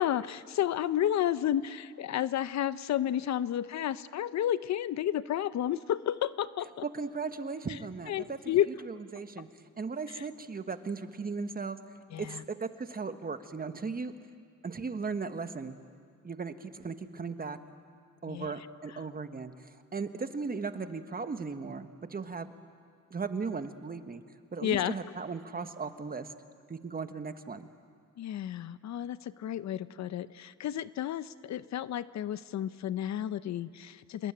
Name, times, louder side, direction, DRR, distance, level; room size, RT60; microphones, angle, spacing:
voice 1, 0.0-6.8 8.1-8.7 10.2-10.3 12.1-12.4 18.3-18.5 24.6-24.9 28.2-34.3, left 11 dB, 65° left, 15 dB, 0.8 m, -31 dB
voice 2, 6.8-8.4 8.9-11.8 12.2-14.1 14.6-15.8 16.2-17.6 18.2-22.5 23.1-24.2 24.5-26.3 26.7-27.7, right 4 dB, 30° right, 9 dB, 1.5 m, -37 dB
27.0 x 21.0 x 9.0 m, 2.1 s
cardioid pair, 90°, 30 cm